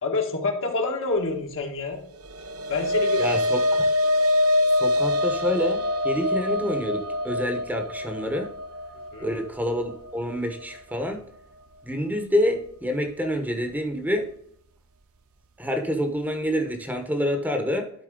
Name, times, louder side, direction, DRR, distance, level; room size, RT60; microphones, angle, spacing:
voice 1, 0.0-2.0 2.7-3.2 9.1-9.3, left 3 dB, 60° left, 2 dB, 1.5 m, -27 dB
sound 1, 2.2-10.8, left 1 dB, 65° right, 0.6 m, -25 dB
voice 2, 3.2-3.9 4.8-8.5 9.2-11.2 11.8-14.3 15.6-17.9, equal, 10° right, 5 dB, 0.9 m, -27 dB
11.5 x 4.3 x 3.7 m, 0.65 s
head